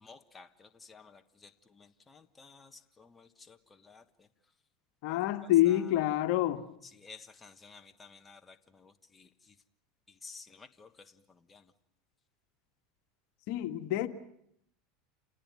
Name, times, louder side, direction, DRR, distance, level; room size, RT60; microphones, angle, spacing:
voice 1, 0.0-1.5 1.8-2.7 3.0-3.6 3.8-4.0 5.7-5.8 7.0-9.3 10.2-10.9 11.5-11.6, left 4 dB, 20° left, 8 dB, 1.4 m, -53 dB
voice 2, 5.0-6.6 13.5-14.1, left 14 dB, 65° left, 9 dB, 1.8 m, -27 dB
28.5 x 18.5 x 9.4 m, 0.74 s
hypercardioid pair, 100°, 0 cm